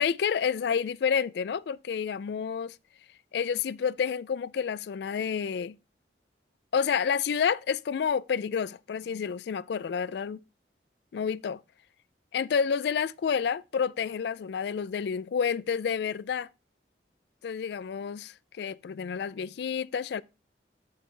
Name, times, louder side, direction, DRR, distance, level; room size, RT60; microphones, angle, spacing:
voice 1, 0.0-2.8 3.3-5.8 6.7-10.4 11.1-11.6 12.3-16.5 17.4-20.2, left 6 dB, 65° left, 0.3 m, -29 dB
12.5 x 4.7 x 3.3 m
head